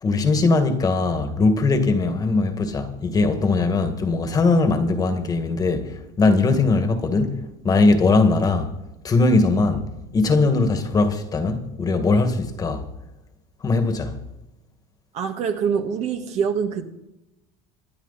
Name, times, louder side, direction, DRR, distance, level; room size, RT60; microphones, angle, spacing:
voice 1, 0.0-8.7 9.0-9.9 10.1-12.8 13.6-14.1, left 3 dB, 25° left, 1.9 m, -20 dB
voice 2, 15.1-16.9, right 7 dB, 50° right, 1.8 m, -24 dB
26.5 x 10.5 x 4.2 m
supercardioid pair, 130°, 15 cm